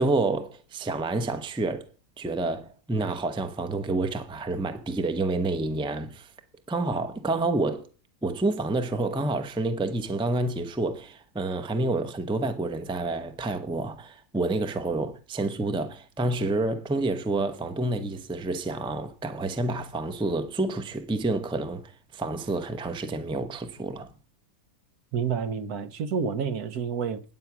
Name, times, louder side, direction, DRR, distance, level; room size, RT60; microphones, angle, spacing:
voice 1, 0.0-1.9 2.2-6.3 6.7-7.9 8.2-24.1, right 2 dB, 5° right, 0.5 m, -28 dB
voice 2, 25.1-27.2, right 6 dB, 70° right, 1.3 m, -29 dB
9.8 x 8.2 x 6.0 m
omnidirectional pair, 1.7 m